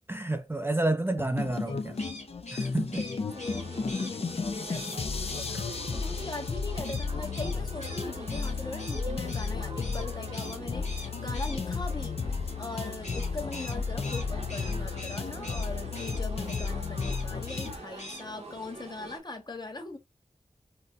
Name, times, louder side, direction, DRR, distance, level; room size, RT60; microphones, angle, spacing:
voice 1, 0.1-2.0 2.5-3.0 5.5-5.7, right 2 dB, 20° right, 0.4 m, -30 dB
Sakura E-Keys (Intro), 1.2-17.8, left 4 dB, 55° left, 0.5 m, -33 dB
sound 1, 1.9-4.1 4.7-5.0 5.3-5.5 6.8-9.5 9.8-10.1 10.3-10.6 10.8-11.6 13.0-15.7 15.9-16.2 16.5-16.7 17.0-17.7 18.0-18.2, left 1 dB, 75° left, 1.3 m, -43 dB
voice 2, 3.0-12.2 12.6-20.0, left 2 dB, 35° left, 0.9 m, -41 dB
sound 2, 3.3-19.2, right 2 dB, 60° right, 0.9 m, -45 dB
4.0 x 2.1 x 2.4 m
wide cardioid pair, 55°, 12 cm